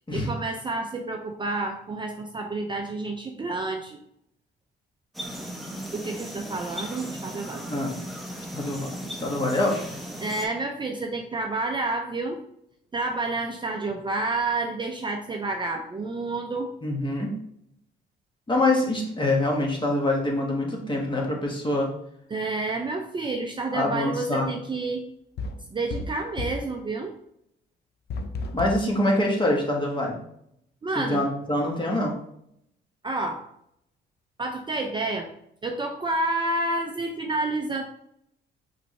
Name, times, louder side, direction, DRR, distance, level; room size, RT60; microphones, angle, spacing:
voice 1, 0.1-4.0 5.9-7.6 10.2-12.4 12.9-16.7 22.3-25.1 25.7-27.2 30.8-31.2 33.0-33.4 34.4-35.3 35.6-37.8, right 2 dB, 25° right, 3 dB, 0.5 m, -29 dB
sound 1, 5.1-10.5, equal, ahead, 1.0 m, -37 dB
voice 2, 8.5-9.8 16.8-17.3 18.5-21.9 23.7-24.5 28.5-30.2 31.0-32.1, left 1 dB, 25° left, -1 dB, 1.4 m, -25 dB
sound 2, 25.4-26.7 28.1-28.9, left 3 dB, 55° left, 0.5 m, -33 dB
5.0 x 3.2 x 3.2 m, 0.74 s
cardioid pair, 90°, 20 cm